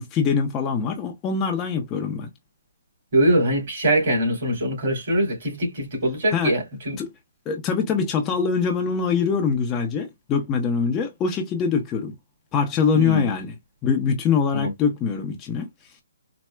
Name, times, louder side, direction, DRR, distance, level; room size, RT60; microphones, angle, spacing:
voice 1, 0.0-2.3 6.3-6.5 7.0-7.1 7.5-12.1 12.5-13.5 13.8-15.7, left 6 dB, 15° left, 0.6 m, -23 dB
voice 2, 3.1-7.0 12.9-13.3 14.5-14.7, right 1 dB, 50° right, 2.5 m, -22 dB
4.3 x 2.0 x 2.2 m
hypercardioid pair, 160°, 0 cm